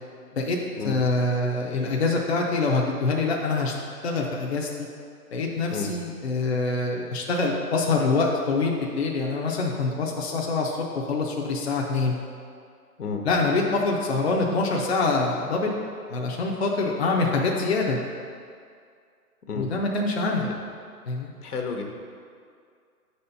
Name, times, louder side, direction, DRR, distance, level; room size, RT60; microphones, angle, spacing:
voice 1, 0.3-3.7 4.0-4.9 5.3-12.2 13.2-15.7 16.1-18.0 19.5-20.5 21.1-21.3, left 3 dB, 45° left, -1 dB, 0.6 m, -25 dB
voice 2, 21.4-21.8, left 5 dB, 75° left, 2 dB, 1.1 m, -31 dB
6.1 x 4.3 x 5.5 m, 2.2 s
hypercardioid pair, 160°, 46 cm